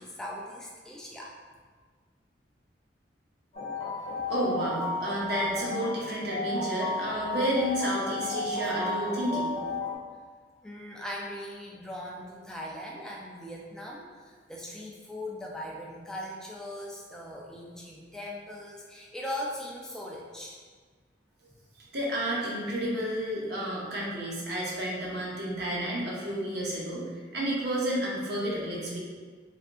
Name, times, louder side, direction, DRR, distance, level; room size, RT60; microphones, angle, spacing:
voice 1, 0.0-1.3 10.6-20.6, left 1 dB, 5° left, -3 dB, 0.3 m, -40 dB
sound 1, 3.5-9.9, left 3 dB, 35° left, 0.7 m, -33 dB
voice 2, 4.3-9.5 21.8-27.0 27.3-29.0, right 1 dB, 60° right, -5 dB, 0.8 m, -31 dB
3.4 x 2.5 x 2.5 m, 1.5 s
head